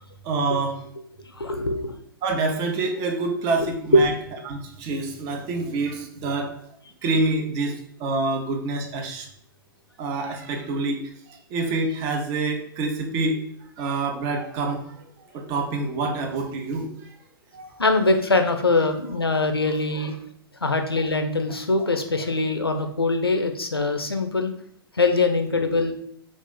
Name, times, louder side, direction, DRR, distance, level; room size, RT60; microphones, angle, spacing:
voice 1, 0.2-0.8 2.2-4.1 4.5-6.5 7.0-9.3 10.0-13.4 13.8-14.9 15.3-17.1 17.5-17.8 20.7-20.8, right 3 dB, 30° right, 3 dB, 0.5 m, -27 dB
voice 2, 1.4-2.0 3.6-4.0 17.8-20.1 20.6-24.5 24.9-25.9, left 2 dB, 85° left, 6 dB, 0.4 m, -22 dB
2.7 x 2.4 x 3.8 m, 0.67 s
figure-of-eight pair, 105°, 12 cm